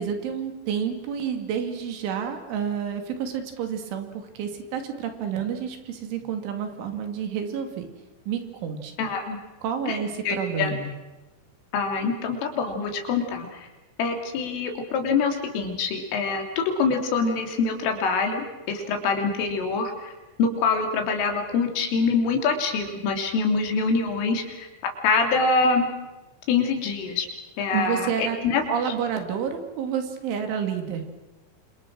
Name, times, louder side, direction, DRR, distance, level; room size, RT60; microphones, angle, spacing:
voice 1, 0.0-7.9 8.3-9.0 9.6-10.9 27.7-28.4 28.7-31.0, right 7 dB, 70° right, 6 dB, 4.8 m, -29 dB
voice 2, 9.0-9.4 9.9-10.0 10.3-10.8 11.7-13.7 14.0-20.1 20.4-24.7 25.0-25.9 26.5-27.3 27.6-28.6, left 4 dB, 80° left, 4 dB, 5.7 m, -25 dB
28.5 x 26.5 x 6.3 m, 1.1 s
omnidirectional pair, 5.8 m